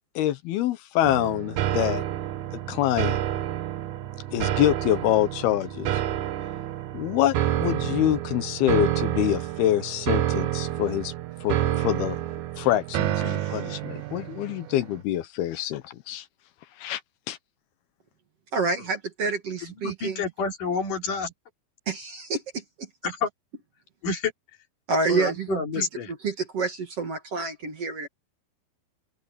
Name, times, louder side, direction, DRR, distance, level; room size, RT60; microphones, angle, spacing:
voice 1, 0.2-2.1 2.5-3.2 4.3-6.0 6.9-11.1 11.4-12.2 12.6-16.3 16.8-17.0 17.3-17.4, left 13 dB, 80° left, 2.9 m, -26 dB
sound 1, 1.0-15.0, right 13 dB, 65° right, 2.0 m, -29 dB
voice 2, 18.5-20.2 21.9-22.9 24.9-25.9 26.2-28.1, right 4 dB, 45° right, 2.8 m, -28 dB
voice 3, 19.6-21.3 23.0-23.3 24.0-24.3 25.1-26.1, left 5 dB, 55° left, 4.6 m, -29 dB
open air
omnidirectional pair, 4.5 m